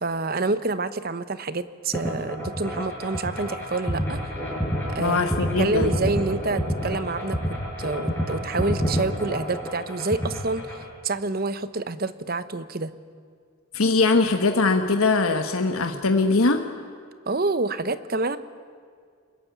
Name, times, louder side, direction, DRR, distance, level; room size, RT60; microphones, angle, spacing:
voice 1, 0.0-4.2 4.9-5.3 5.6-10.7 11.0-12.9 17.3-18.4, right 3 dB, 45° right, 13 dB, 1.0 m, -27 dB
sound 1, 1.9-10.8, equal, 10° left, 6.0 m, -28 dB
voice 2, 5.0-5.9 13.7-16.6, left 3 dB, 90° left, 5 dB, 1.4 m, -21 dB
25.0 x 21.5 x 9.4 m, 2.1 s
head